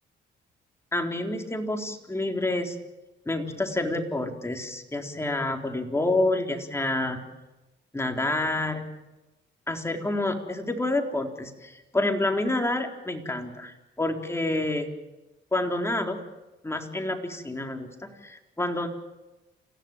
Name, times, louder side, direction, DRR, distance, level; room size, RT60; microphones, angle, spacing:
voice 1, 0.9-2.8 3.3-7.2 7.9-8.9 9.7-14.9 15.5-16.2 16.6-18.9, left 2 dB, 15° left, 3 dB, 4.0 m, -28 dB
29.0 x 16.0 x 9.1 m, 1.1 s
cardioid pair, 90°, 20 cm